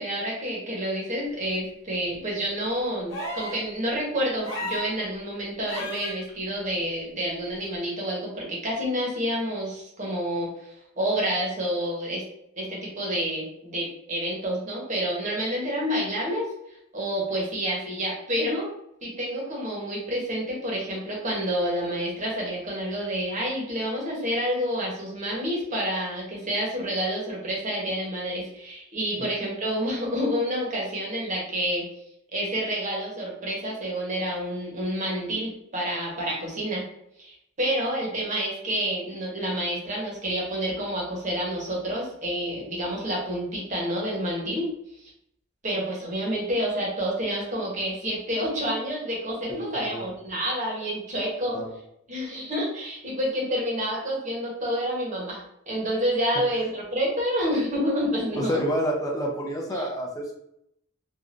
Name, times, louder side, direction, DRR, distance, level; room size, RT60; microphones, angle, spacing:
voice 1, 0.0-12.2 12.6-16.5 16.9-18.7 19.0-31.8 32.3-36.9 37.2-44.6 45.0-45.1 45.6-51.6 52.1-58.6 59.7-59.8, equal, 40° right, -3 dB, 1.0 m, -29 dB
sound 1, 3.1-3.6 4.4-4.9 5.7-6.2 7.6-7.7, left 1 dB, 80° left, 1.2 m, -33 dB
voice 2, 49.5-50.0 51.5-51.7 58.4-60.3, equal, 20° left, 0 dB, 0.6 m, -28 dB
3.2 x 2.5 x 2.5 m, 0.76 s
head